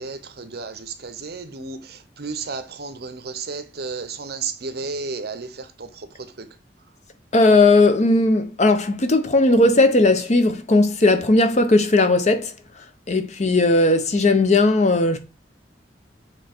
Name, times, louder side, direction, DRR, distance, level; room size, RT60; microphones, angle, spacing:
voice 1, 0.0-1.8 2.2-5.5, right 4 dB, 60° right, 0.8 m, -32 dB
voice 2, 7.3-12.5 13.1-15.2, left 2 dB, 40° left, 0.7 m, -17 dB
7.4 x 3.2 x 4.4 m
head